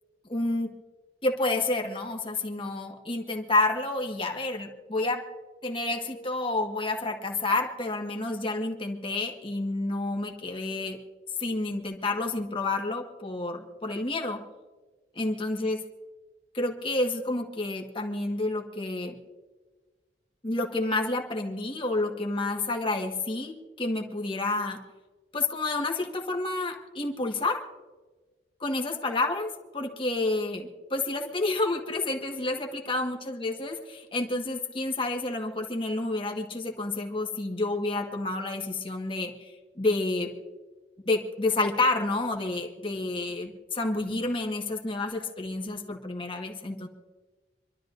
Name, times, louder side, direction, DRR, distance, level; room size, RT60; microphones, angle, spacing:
voice 1, 0.3-0.7 1.2-5.2 5.6-11.0 11.4-14.4 15.1-15.8 16.5-19.1 20.4-24.8 25.3-27.6 28.6-33.7 34.1-40.3 41.0-46.9, left 2 dB, 30° left, 3 dB, 1.5 m, -29 dB
26.5 x 12.5 x 2.6 m, 1.3 s
head